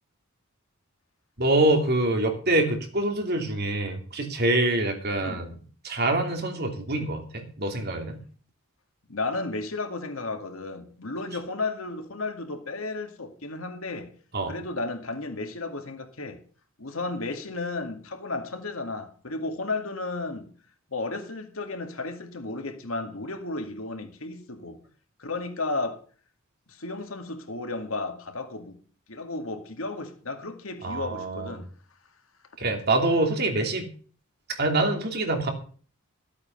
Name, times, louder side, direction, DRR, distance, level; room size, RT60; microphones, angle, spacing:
voice 1, 1.4-5.5 5.8-8.2 14.3-14.5 30.8-31.5 32.6-33.9 34.6-35.5, right 2 dB, 50° right, 2.8 m, -25 dB
voice 2, 9.1-14.1 14.5-16.4 16.8-20.5 20.9-24.8 25.2-26.0 26.7-28.8 29.1-31.7, left 3 dB, 75° left, 2.2 m, -33 dB
14.5 x 8.6 x 5.8 m
head